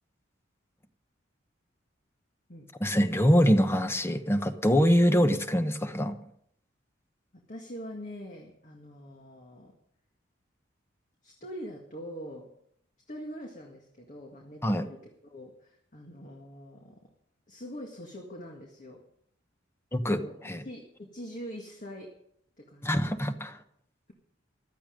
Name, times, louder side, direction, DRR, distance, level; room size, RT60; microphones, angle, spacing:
voice 1, 2.8-6.2 14.6-14.9 19.9-20.6 22.8-23.6, equal, 15° left, 9 dB, 1.0 m, -24 dB
voice 2, 7.5-9.7 11.2-12.5 13.1-15.0 15.2-17.1 17.5-19.1 20.1-20.4 20.6-22.2 22.6-23.1, equal, 40° left, 1 dB, 1.9 m, -43 dB
15.5 x 12.0 x 5.2 m, 0.70 s
head